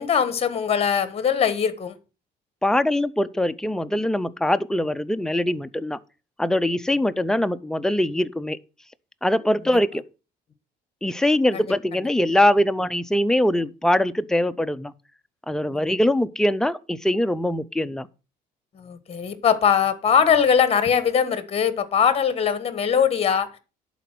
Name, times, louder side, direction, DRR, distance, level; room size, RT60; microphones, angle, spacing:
voice 1, 0.0-2.0 11.5-11.6 15.7-16.0 18.7-23.6, left 7 dB, 35° left, 1.3 m, -21 dB
voice 2, 2.6-6.0 6.4-8.6 9.2-10.0 11.0-14.9 15.5-18.1, left 1 dB, 5° left, 0.5 m, -22 dB
11.0 x 4.1 x 6.0 m
cardioid pair, 110°, 17 cm